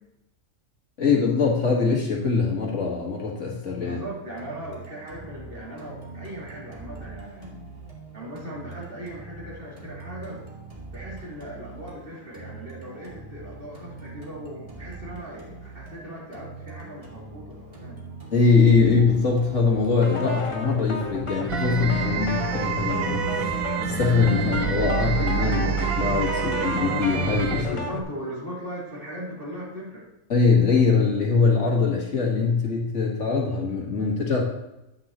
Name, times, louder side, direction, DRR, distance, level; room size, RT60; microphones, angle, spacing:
voice 1, 1.0-4.0 18.3-23.5 23.9-27.8 30.3-34.4, left 4 dB, 60° left, -1 dB, 1.9 m, -22 dB
voice 2, 3.8-7.6 8.1-10.4 10.9-18.0 27.7-30.1, equal, 40° right, -5 dB, 2.9 m, -38 dB
sound 1, 4.4-22.4, right 3 dB, 25° right, 1.8 m, -43 dB
sound 2, 20.0-28.0, left 3 dB, 30° left, 0.7 m, -32 dB
sound 3, 21.5-27.6, right 7 dB, 85° right, 1.2 m, -27 dB
9.7 x 8.6 x 2.9 m, 0.92 s
omnidirectional pair, 1.5 m